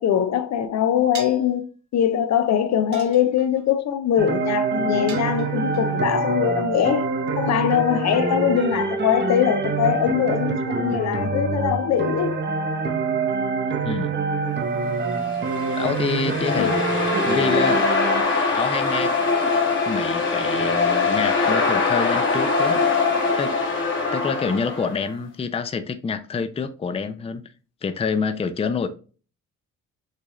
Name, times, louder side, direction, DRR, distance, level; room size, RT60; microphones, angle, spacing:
voice 1, 0.0-1.7 1.9-7.1 7.4-12.4 16.6-16.7, left 9 dB, 60° left, 0.6 m, -22 dB
sound 1, 1.1-1.5 2.9-3.6 5.1-5.8, right 6 dB, 70° right, 0.9 m, -39 dB
sound 2, 4.2-18.2, right 4 dB, 35° right, 0.8 m, -25 dB
voice 2, 13.8-14.2 15.8-16.7 17.3-17.8 18.5-19.1 19.9-22.8 23.4-23.7 24.1-27.4 27.8-28.9, left 5 dB, 20° left, 0.5 m, -27 dB
sound 3, 15.2-25.0, left 4 dB, 40° left, 1.3 m, -22 dB
6.6 x 2.5 x 3.0 m
cardioid pair, 90°, 30 cm